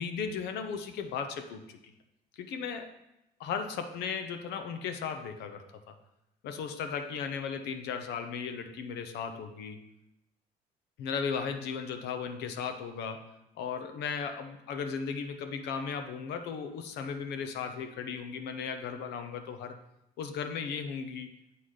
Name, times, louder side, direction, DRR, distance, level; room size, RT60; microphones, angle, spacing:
voice 1, 0.0-1.8 2.4-2.9 3.4-6.0 6.4-9.9 11.0-19.8 20.2-21.3, left 6 dB, 80° left, 7 dB, 0.8 m, -36 dB
7.8 x 4.1 x 4.9 m, 0.85 s
cardioid pair, 110°, 17 cm